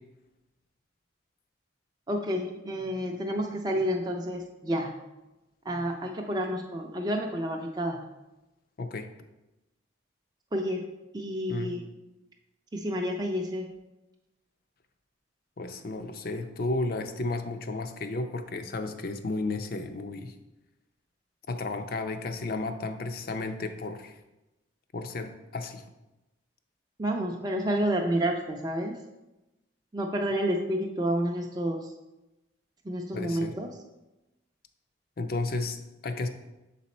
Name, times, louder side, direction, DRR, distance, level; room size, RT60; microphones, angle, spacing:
voice 1, 2.1-4.9 5.7-8.0 10.5-10.8 11.1-11.8 12.7-13.7 27.0-29.0 29.9-31.9 32.8-33.7, equal, 20° right, 1 dB, 0.4 m, -29 dB
voice 2, 8.8-9.1 11.5-11.7 15.6-20.3 21.5-24.2 24.9-25.8 33.1-33.5 35.2-35.8 36.0-36.3, left 2 dB, 50° left, 7 dB, 0.5 m, -33 dB
6.7 x 4.1 x 4.2 m, 0.99 s
head